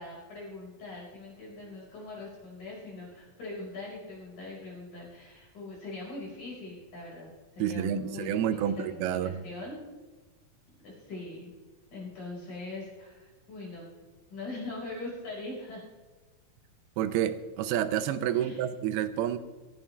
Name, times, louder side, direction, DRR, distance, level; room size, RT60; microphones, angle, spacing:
voice 1, 0.0-9.8 10.8-11.5 11.9-13.9 14.3-15.9 18.3-18.6, left 2 dB, 50° left, -4 dB, 6.6 m, -42 dB
voice 2, 7.6-9.4 17.0-19.4, right 10 dB, 90° right, 11 dB, 2.8 m, -29 dB
18.0 x 14.5 x 3.4 m, 1.2 s
omnidirectional pair, 4.4 m